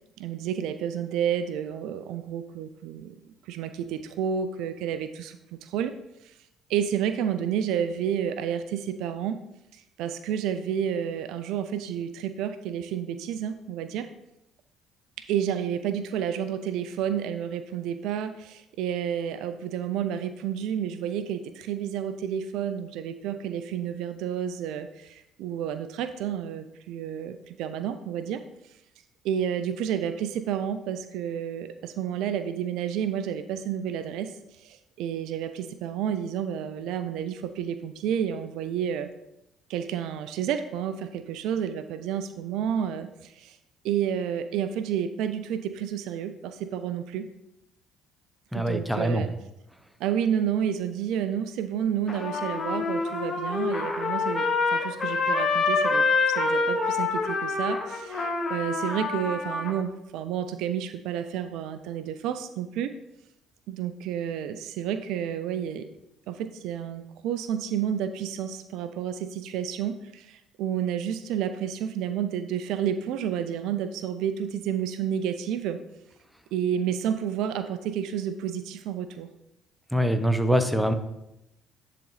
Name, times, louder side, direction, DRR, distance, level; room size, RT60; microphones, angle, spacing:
voice 1, 0.2-3.2 3.4-5.9 6.2-6.3 6.7-9.4 9.7-14.1 15.2-28.4 29.2-39.1 39.7-43.6 43.8-47.3 48.5-49.3 50.0-62.9 63.7-65.9 66.3-75.8 76.5-79.3, right 9 dB, 70° right, 11 dB, 0.4 m, -30 dB
voice 2, 48.5-49.3 79.9-80.9, equal, ahead, 8 dB, 0.8 m, -24 dB
Trumpet, 52.1-59.7, left 3 dB, 35° left, 1.2 m, -26 dB
9.9 x 3.9 x 3.2 m, 0.87 s
hypercardioid pair, 55°, 0 cm